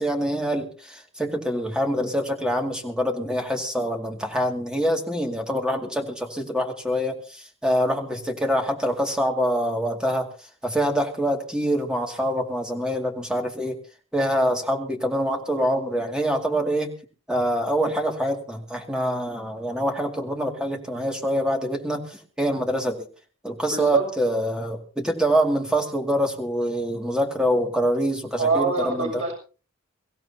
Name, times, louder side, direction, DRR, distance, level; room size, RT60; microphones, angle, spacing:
voice 1, 0.0-10.3 10.6-13.8 14.1-16.9 17.3-23.1 23.4-29.2, equal, 5° right, 2 dB, 2.3 m, -25 dB
voice 2, 23.7-24.0 28.4-29.3, right 4 dB, 85° right, -1 dB, 6.9 m, -23 dB
24.0 x 16.0 x 2.8 m, 0.36 s
head